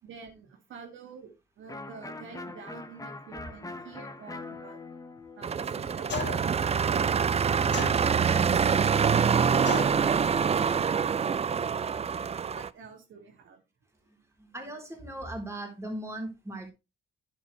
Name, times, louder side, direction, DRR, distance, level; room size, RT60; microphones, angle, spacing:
voice 1, 0.0-4.8 5.4-6.5 6.9-7.5 12.2-13.6, right 6 dB, 75° right, 3 dB, 2.3 m, -48 dB
Electric guitar, 1.7-7.3, left 3 dB, 15° left, 1.2 m, -43 dB
sound 1, 5.4-12.7, right 6 dB, 30° right, 0.5 m, -25 dB
sound 2, 6.1-6.6 7.7-8.4 9.7-10.1, left 6 dB, 60° left, 2.2 m, -35 dB
voice 2, 14.4-16.7, right 1 dB, 15° right, 2 dB, 3.8 m, -40 dB
9.7 x 7.3 x 3.2 m, 0.26 s
cardioid pair, 90°, 20 cm